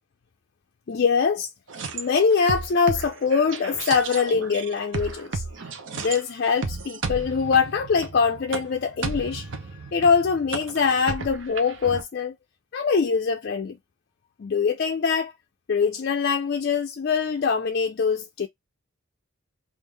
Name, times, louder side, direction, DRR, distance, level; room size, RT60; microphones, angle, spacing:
voice 1, 0.9-1.5 1.9-5.4 5.9-9.5 9.9-12.4 12.7-13.8 14.4-15.3 15.7-18.5, left 5 dB, 50° left, 0.4 m, -23 dB
sound 1, 1.7-6.2 6.6-12.0, right 4 dB, 60° right, 0.7 m, -34 dB
3.5 x 2.5 x 3.2 m
head